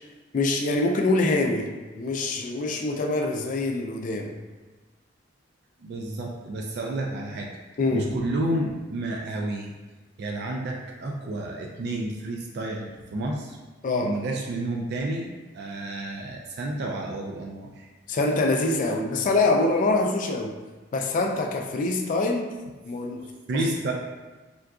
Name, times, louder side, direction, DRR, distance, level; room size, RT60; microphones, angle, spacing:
voice 1, 0.3-1.7 2.0-4.3 7.8-8.1 13.8-14.2 18.1-20.5 20.9-22.5 22.9-23.3 23.5-23.6, left 2 dB, 40° left, 3 dB, 0.3 m, -24 dB
voice 2, 5.8-7.5 7.9-9.7 10.2-13.6 14.0-17.9 23.2-23.9, right 2 dB, 55° right, 0 dB, 0.3 m, -31 dB
3.7 x 2.3 x 2.3 m, 1.2 s
head